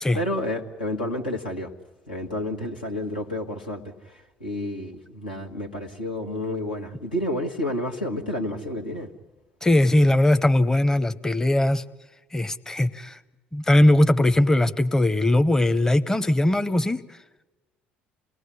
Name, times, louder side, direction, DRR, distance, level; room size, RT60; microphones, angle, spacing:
voice 1, 0.1-1.7 2.1-3.9 4.4-9.1, left 1 dB, 85° left, 0 dB, 1.6 m, -30 dB
voice 2, 9.6-11.8 12.3-13.2 13.5-17.0, left 1 dB, 10° left, 12 dB, 0.8 m, -20 dB
27.0 x 18.5 x 9.8 m, 1.2 s
figure-of-eight pair, 55°, 5 cm